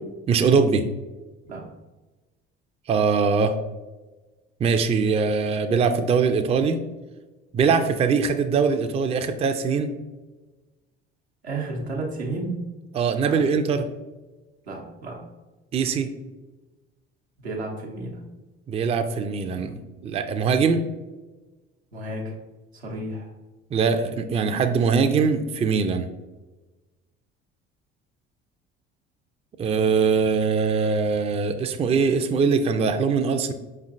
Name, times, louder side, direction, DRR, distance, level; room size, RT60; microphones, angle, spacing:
voice 1, 0.3-0.9 2.9-3.6 4.6-6.8 7.5-9.9 12.9-13.9 15.7-16.1 18.7-19.8 20.0-20.8 23.7-26.1 29.6-33.5, right 5 dB, 20° right, 7 dB, 0.4 m, -22 dB
voice 2, 11.4-12.7 13.2-13.4 14.7-15.2 17.4-18.2 21.9-22.3 22.7-23.3, right 2 dB, 90° right, -2 dB, 0.9 m, -32 dB
5.1 x 3.2 x 2.5 m, 1.2 s
hypercardioid pair, 60°, 31 cm